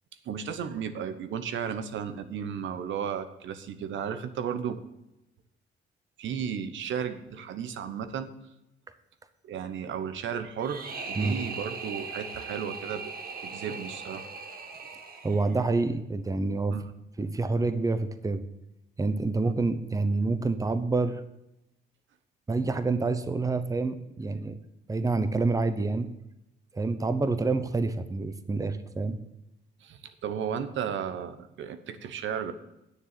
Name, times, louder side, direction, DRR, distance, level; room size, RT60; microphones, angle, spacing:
voice 1, 0.2-4.8 6.2-8.3 9.4-13.1 13.4-14.3 16.7-16.9 19.4-19.5 29.8-32.5, right 8 dB, 70° right, 11 dB, 1.0 m, -34 dB
sound 1, 10.6-15.7, right 4 dB, 50° right, 1.7 m, -39 dB
voice 2, 15.2-16.8 17.2-18.4 19.0-21.2 22.5-24.6 24.9-26.1 26.7-29.2, right 3 dB, 15° right, 11 dB, 0.9 m, -27 dB
10.0 x 6.8 x 7.5 m, 0.88 s
cardioid pair, 90°, 20 cm